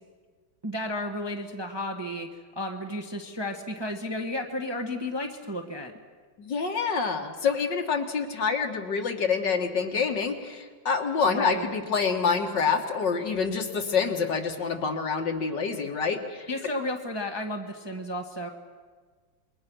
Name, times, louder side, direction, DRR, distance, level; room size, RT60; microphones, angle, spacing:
voice 1, 0.6-2.3 2.5-5.9 11.3-11.7 16.5-18.5, left 1 dB, 15° right, 2 dB, 1.4 m, -32 dB
voice 2, 6.4-16.5, left 5 dB, 65° left, 3 dB, 2.5 m, -27 dB
27.5 x 23.0 x 6.3 m, 1.5 s
omnidirectional pair, 2.1 m